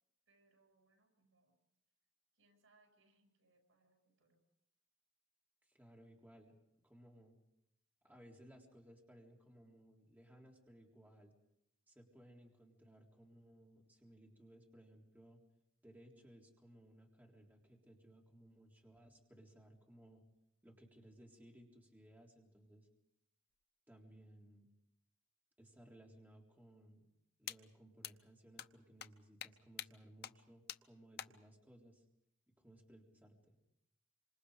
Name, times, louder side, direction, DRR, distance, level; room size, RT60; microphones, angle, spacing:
voice 1, 0.3-1.6 2.3-4.4, right 2 dB, 85° right, 4 dB, 7.0 m, -74 dB
voice 2, 5.6-6.6 6.8-7.4 8.0-11.3 11.9-15.4 15.8-20.2 20.6-22.9 23.9-24.7 25.6-27.1 27.4-32.0 32.6-33.6, right 1 dB, 10° right, -1 dB, 3.8 m, -61 dB
sound 1, 27.5-27.6 28.0-28.1 28.6-28.7 29.0-29.1 29.4-29.5 29.8-29.9 30.2-30.3 30.7-30.8 31.2-31.3, left 10 dB, 55° left, 0.8 m, -45 dB
27.5 x 26.0 x 5.1 m, 0.80 s
head